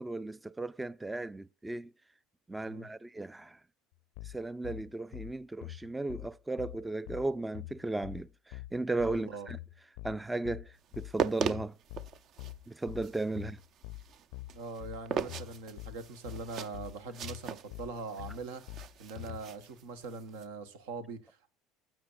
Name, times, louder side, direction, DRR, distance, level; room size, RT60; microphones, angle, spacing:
voice 1, 0.0-1.9 2.5-3.6 4.2-9.6 10.0-11.8 12.7-13.6, right 2 dB, 10° right, 0.3 m, -36 dB
sound 1, 4.2-19.4, left 18 dB, 80° left, 0.4 m, -45 dB
voice 2, 9.1-9.5 14.5-18.6 19.0-21.5, right 4 dB, 85° right, 1.2 m, -42 dB
sound 2, 10.9-20.4, right 7 dB, 55° right, 0.6 m, -39 dB
12.5 x 7.6 x 2.5 m
supercardioid pair, 90°, 0 cm